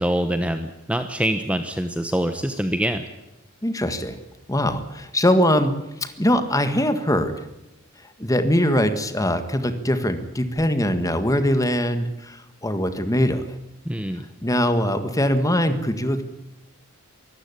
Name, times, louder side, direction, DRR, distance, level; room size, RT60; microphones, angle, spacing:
voice 1, 0.0-3.1 13.8-14.3, right 1 dB, 5° right, 8 dB, 1.0 m, -25 dB
voice 2, 3.6-4.2 4.5-5.7 6.0-7.3 8.2-13.5 14.4-16.2, equal, 15° left, 9 dB, 1.8 m, -22 dB
24.5 x 14.5 x 9.8 m, 0.97 s
head